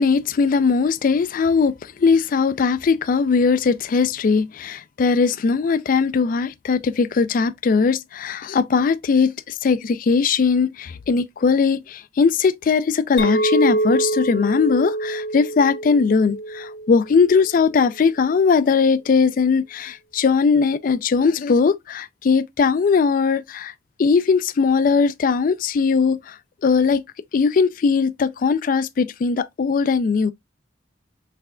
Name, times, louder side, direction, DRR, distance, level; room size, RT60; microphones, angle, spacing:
voice 1, 0.0-23.7 24.0-26.4 26.6-27.0 27.3-30.3, left 5 dB, 50° left, 0.3 m, -19 dB
Chink clink, 13.2-17.7, right 2 dB, 80° left, 0.9 m, -25 dB
5.8 x 3.3 x 2.3 m
head